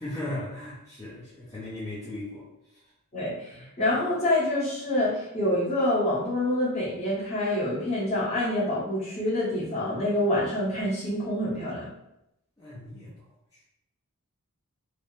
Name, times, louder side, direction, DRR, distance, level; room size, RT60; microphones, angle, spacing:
voice 1, 0.0-2.8 3.5-3.7 12.6-13.2 13.5-13.6, left 1 dB, 15° left, -11 dB, 0.6 m, -38 dB
voice 2, 3.1-11.9, left 1 dB, 30° left, -8 dB, 1.1 m, -27 dB
3.3 x 2.1 x 2.6 m, 0.85 s
head